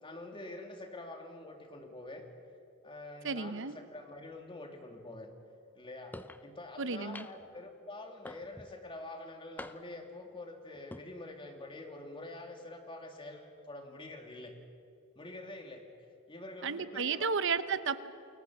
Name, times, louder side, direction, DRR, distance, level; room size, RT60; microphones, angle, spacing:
voice 1, 0.0-2.3 2.8-5.3 5.7-14.5 15.2-15.9 16.3-17.3, left 2 dB, 25° left, 3 dB, 2.6 m, -46 dB
voice 2, 3.2-3.7 6.8-7.3 16.6-18.1, right 5 dB, 60° right, 13 dB, 0.9 m, -33 dB
sound 1, 6.1-6.4 7.1-7.5 8.2-8.7 9.6-10.1 10.7-11.1, left 1 dB, 10° left, 0.6 m, -46 dB
29.0 x 22.5 x 6.2 m, 2.6 s
head